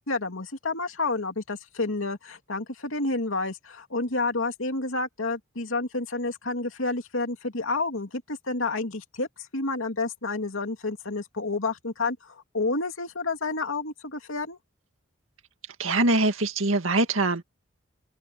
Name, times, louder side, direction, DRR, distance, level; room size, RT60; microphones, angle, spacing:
voice 1, 0.1-14.6, left 3 dB, 85° left, 2.8 m, -30 dB
voice 2, 15.8-17.4, right 2 dB, 85° right, 2.1 m, -23 dB
open air
head